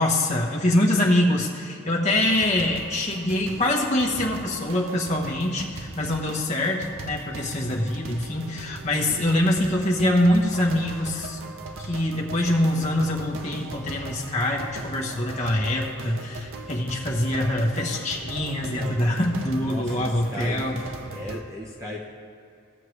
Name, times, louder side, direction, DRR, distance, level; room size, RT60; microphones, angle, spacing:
voice 1, 0.0-11.4 11.8-20.8, left 1 dB, 35° left, -2 dB, 1.1 m, -24 dB
sound 1, 2.1-21.4, right 2 dB, 65° right, 0.7 m, -39 dB
voice 2, 18.8-19.1 19.6-22.0, equal, 15° right, -2 dB, 0.6 m, -37 dB
16.5 x 6.5 x 3.3 m, 2.6 s
head